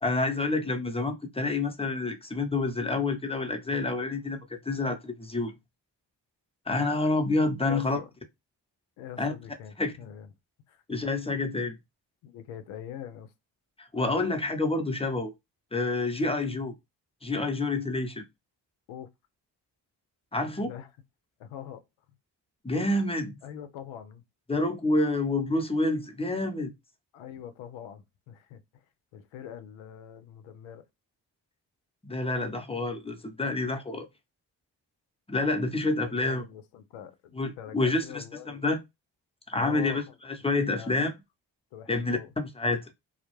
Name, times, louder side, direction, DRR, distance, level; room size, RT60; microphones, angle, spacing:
voice 1, 0.0-4.4 4.7-5.5 6.7-8.0 9.2-9.3 9.8-9.9 10.9-11.7 13.8-15.3 15.7-16.7 17.2-18.2 20.3-20.7 22.6-23.4 24.5-26.7 32.0-34.1 35.3-36.5 37.4-38.8 39.5-41.1 41.9-42.8, left 2 dB, 10° left, 0.7 m, -28 dB
voice 2, 7.6-8.1 9.0-10.3 10.7-10.8 12.2-13.3 18.9-19.1 20.3-20.9 21.4-21.8 23.4-24.2 27.1-28.8 29.1-30.9 36.0-38.6 39.5-40.2 40.7-41.1 41.7-42.3, left 9 dB, 85° left, 0.5 m, -44 dB
2.2 x 2.0 x 3.0 m
hypercardioid pair, 40°, 47 cm